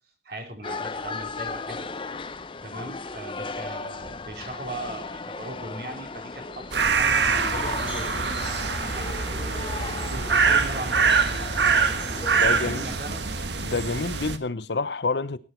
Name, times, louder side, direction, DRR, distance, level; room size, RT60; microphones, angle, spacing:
voice 1, 0.2-1.9 2.6-9.5 10.1-11.2 11.5-11.6 11.9-13.2 13.8-14.0, right 1 dB, 60° right, 3.7 m, -39 dB
sound 1, 0.6-13.0, left 3 dB, 30° left, 0.8 m, -36 dB
sound 2, 6.7-14.4, right 5 dB, 75° right, 1.3 m, -24 dB
voice 2, 12.4-12.9 13.6-15.4, left 3 dB, 75° left, 0.9 m, -28 dB
17.5 x 10.5 x 4.5 m
head